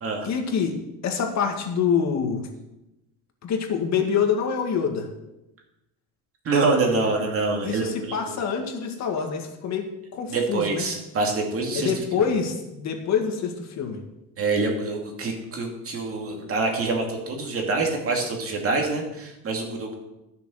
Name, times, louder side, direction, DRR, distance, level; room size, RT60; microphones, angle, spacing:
voice 1, 0.2-2.5 3.4-5.1 7.6-10.9 11.7-14.0, left 6 dB, 50° left, 3 dB, 2.0 m, -26 dB
voice 2, 6.4-8.2 10.3-11.9 14.4-19.9, right 3 dB, 40° right, 1 dB, 2.6 m, -25 dB
13.5 x 6.8 x 6.5 m, 0.93 s
cardioid pair, 140°, 34 cm